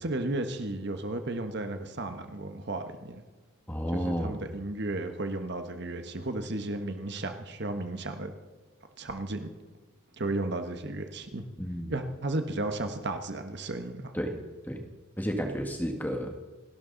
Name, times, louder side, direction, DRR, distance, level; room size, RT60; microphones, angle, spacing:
voice 1, 0.0-3.2 3.9-8.3 9.0-9.5 10.2-11.4 11.9-14.1, right 2 dB, 55° right, 7 dB, 1.3 m, -34 dB
voice 2, 3.7-4.4 11.6-11.9 14.1-14.4 14.7-14.8 15.2-16.3, equal, 10° left, 4 dB, 1.6 m, -31 dB
28.5 x 12.0 x 4.0 m, 1.3 s
head